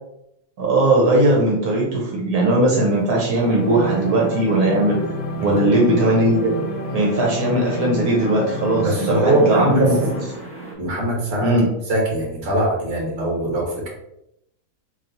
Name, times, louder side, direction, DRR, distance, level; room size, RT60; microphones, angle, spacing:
voice 1, 0.6-5.0 5.4-6.5 6.9-10.3 11.4-11.7, right 1 dB, 80° right, -2 dB, 1.3 m, -18 dB
sound 1, 2.9-10.7, right 2 dB, 20° right, 0.4 m, -40 dB
sound 2, 3.4-10.2, equal, 65° left, 0.9 m, -29 dB
voice 2, 5.4-5.7 8.7-9.9 10.8-11.5 11.9-13.9, right 1 dB, 55° right, -1 dB, 1.4 m, -22 dB
3.1 x 2.8 x 3.9 m, 0.81 s
omnidirectional pair, 1.6 m